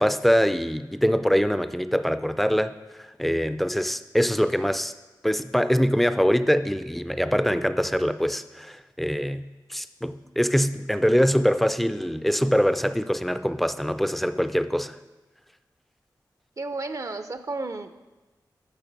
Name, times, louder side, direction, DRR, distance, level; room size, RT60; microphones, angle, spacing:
voice 1, 0.0-2.7 3.2-4.9 5.2-9.4 9.7-15.0, equal, ahead, 12 dB, 0.4 m, -23 dB
voice 2, 16.6-17.9, right 3 dB, 45° right, 10 dB, 0.5 m, -32 dB
8.9 x 6.4 x 6.0 m, 1.2 s
wide cardioid pair, 75°, 8 cm